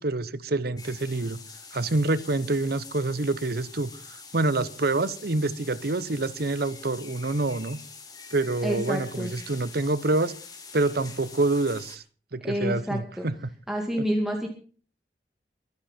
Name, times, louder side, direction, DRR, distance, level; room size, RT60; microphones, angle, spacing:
voice 1, 0.0-1.4 1.7-7.8 8.3-10.3 10.7-12.0 12.3-13.4, right 2 dB, 60° right, 0.9 m, -27 dB
sound 1, 0.8-12.0, left 5 dB, 20° left, 2.6 m, -45 dB
voice 2, 8.6-9.3 12.4-13.3 13.7-14.5, equal, ahead, 2.2 m, -28 dB
23.0 x 9.9 x 4.4 m
head